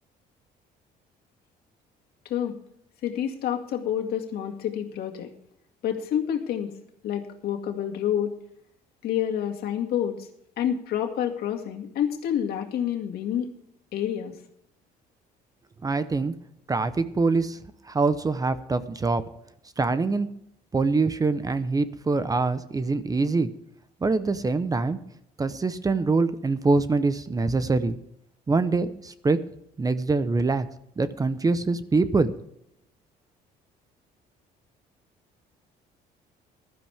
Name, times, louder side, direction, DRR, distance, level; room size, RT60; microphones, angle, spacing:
voice 1, 2.2-2.6 3.0-5.3 5.8-6.7 7.0-8.4 9.0-10.3 10.6-13.5 13.9-14.4, left 9 dB, 70° left, 3 dB, 2.1 m, -28 dB
voice 2, 15.8-16.3 16.7-17.6 17.9-19.2 19.8-20.3 20.7-23.5 24.0-25.0 25.4-27.9 28.5-29.4 29.8-30.7 31.0-32.3, right 3 dB, 20° right, 13 dB, 0.8 m, -24 dB
15.5 x 12.5 x 3.5 m, 0.73 s
cardioid pair, 110°, 17 cm